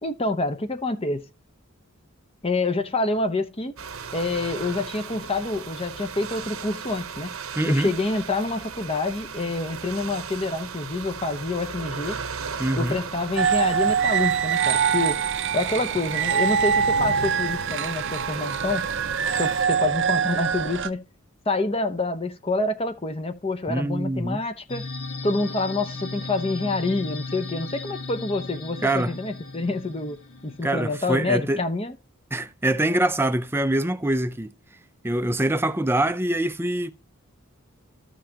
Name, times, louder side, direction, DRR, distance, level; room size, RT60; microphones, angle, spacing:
voice 1, 0.0-1.3 2.4-3.7 4.1-7.3 7.7-12.2 12.8-15.2 15.5-18.9 19.3-21.1 21.5-24.9 25.2-31.9, left 2 dB, 25° left, 0.8 m, -27 dB
sound 1, 3.8-19.7, right 5 dB, 75° right, 1.0 m, -36 dB
voice 2, 7.6-7.9 12.6-13.0 23.7-24.4 28.8-29.1 30.6-31.6 32.3-34.5 35.0-36.9, right 1 dB, 10° right, 0.5 m, -24 dB
sound 2, 13.4-20.9, right 7 dB, 55° right, 0.6 m, -24 dB
sound 3, 24.7-31.3, left 3 dB, 65° left, 1.5 m, -36 dB
13.5 x 5.6 x 2.9 m
head